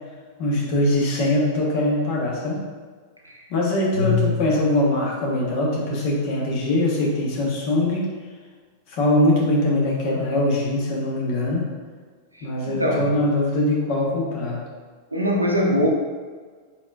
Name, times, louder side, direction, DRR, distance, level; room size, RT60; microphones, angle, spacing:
voice 1, 0.4-2.6 3.5-8.1 8.9-11.7 12.4-14.6, left 1 dB, 45° left, -3 dB, 1.0 m, -22 dB
voice 2, 3.9-4.4 12.4-13.1 15.1-15.9, left 2 dB, 85° right, -1 dB, 0.6 m, -22 dB
4.1 x 3.8 x 2.3 m, 1.5 s
figure-of-eight pair, 90°, 0 cm